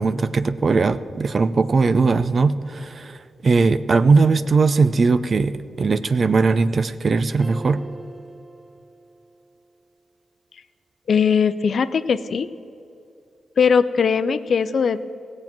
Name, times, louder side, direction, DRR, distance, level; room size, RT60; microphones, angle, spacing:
voice 1, 0.0-7.8, right 4 dB, 55° right, 13 dB, 0.5 m, -19 dB
sound 1, 7.4-9.7, right 2 dB, 25° right, 1.0 m, -42 dB
voice 2, 11.1-12.5 13.6-15.0, left 6 dB, 65° left, 13 dB, 0.5 m, -19 dB
16.5 x 7.4 x 6.1 m, 2.6 s
cardioid pair, 55°, 0 cm